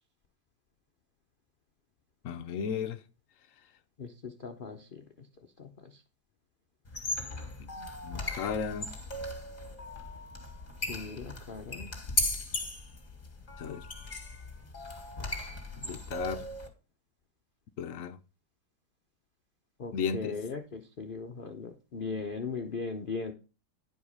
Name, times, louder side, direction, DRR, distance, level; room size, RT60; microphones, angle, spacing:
voice 1, 2.2-3.0 7.6-8.9 13.6-13.8 15.8-16.5 17.8-18.2 19.9-20.4, left 6 dB, 65° left, 0.8 m, -35 dB
voice 2, 4.0-5.3 5.6-6.0 10.9-11.9 19.8-23.3, left 4 dB, 85° left, 0.4 m, -39 dB
sound 1, 6.8-16.7, left 1 dB, 20° left, 1.8 m, -37 dB
11.0 x 4.9 x 5.3 m
omnidirectional pair, 2.1 m